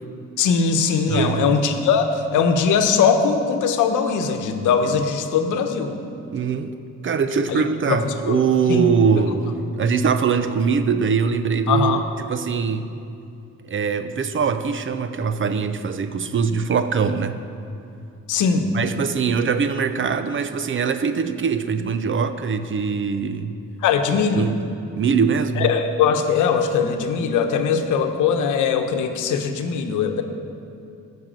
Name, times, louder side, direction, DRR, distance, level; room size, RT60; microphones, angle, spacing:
voice 1, 0.4-5.9 7.5-7.6 7.9-8.0 8.2-8.4 8.7-8.9 11.7-12.0 18.3-18.7 23.8-24.5 25.6-30.2, left 6 dB, 85° left, 6 dB, 1.0 m, -20 dB
voice 2, 1.1-1.5 6.3-6.8 7.0-12.9 13.6-17.4 18.7-23.6 24.4-24.6 24.9-25.7, right 6 dB, 40° right, 10 dB, 0.7 m, -22 dB
12.5 x 6.1 x 7.4 m, 2.6 s
cardioid pair, 90°, 30 cm